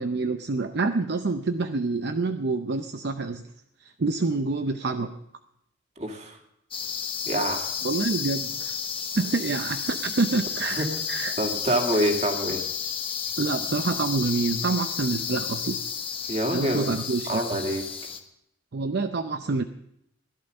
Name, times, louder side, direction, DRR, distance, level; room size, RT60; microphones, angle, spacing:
voice 1, 0.0-3.4 3.8-5.1 7.8-8.8 9.2-11.4 12.0-12.1 13.4-15.8 16.5-17.6 18.7-19.6, right 3 dB, 55° right, 8 dB, 0.6 m, -27 dB
voice 2, 6.0-6.4 7.3-7.6 10.7-10.8 11.4-12.6 16.3-16.9 17.3-17.8, right 1 dB, 35° right, 3 dB, 2.2 m, -26 dB
sound 1, 6.7-18.2, left 7 dB, 25° left, 1.1 m, -32 dB
16.0 x 11.5 x 6.6 m, 0.77 s
head